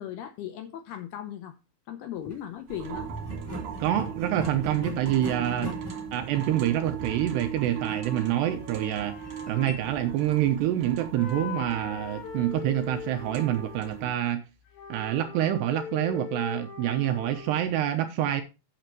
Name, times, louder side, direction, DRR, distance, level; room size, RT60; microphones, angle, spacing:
voice 1, 0.0-1.6 1.9-3.1, left 10 dB, 75° left, 2.4 m, -37 dB
sound 1, 2.1-2.4 3.2-10.7, left 1 dB, 5° left, 3.2 m, -42 dB
sound 2, 2.7-14.1, right 8 dB, 55° right, 3.0 m, -39 dB
voice 2, 3.8-5.8 6.1-14.4 14.9-18.4, right 12 dB, 80° right, 2.6 m, -27 dB
sound 3, 4.5-4.6 8.0-10.8 11.1-14.0 14.7-17.7, left 7 dB, 60° left, 3.0 m, -41 dB
11.5 x 8.8 x 3.0 m
omnidirectional pair, 5.5 m